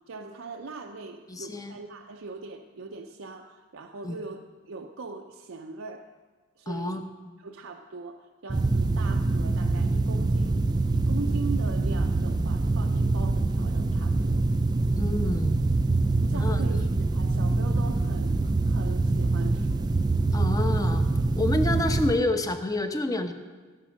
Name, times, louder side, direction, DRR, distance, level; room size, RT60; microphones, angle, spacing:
voice 1, 0.1-6.1 6.6-7.0 7.4-10.7 10.9-14.4 16.2-19.9, right 4 dB, 70° right, 3 dB, 0.6 m, -40 dB
voice 2, 1.3-1.7 4.0-4.2 6.7-7.0 15.0-15.7 16.3-16.6 20.3-21.1 21.4-23.3, left 2 dB, 15° left, 7 dB, 0.8 m, -28 dB
sound 1, 8.5-22.2, right 2 dB, 20° right, 0.3 m, -25 dB
16.5 x 6.0 x 6.4 m, 1.4 s
head